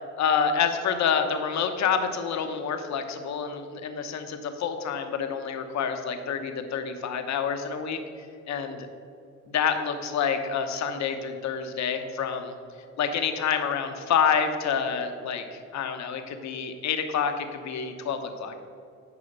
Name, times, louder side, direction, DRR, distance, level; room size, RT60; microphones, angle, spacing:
voice 1, 0.2-8.0 8.5-8.9 9.5-12.5 13.0-18.6, left 7 dB, 65° left, 6 dB, 0.9 m, -28 dB
9.9 x 4.9 x 5.4 m, 2.5 s
cardioid pair, 90°, 30 cm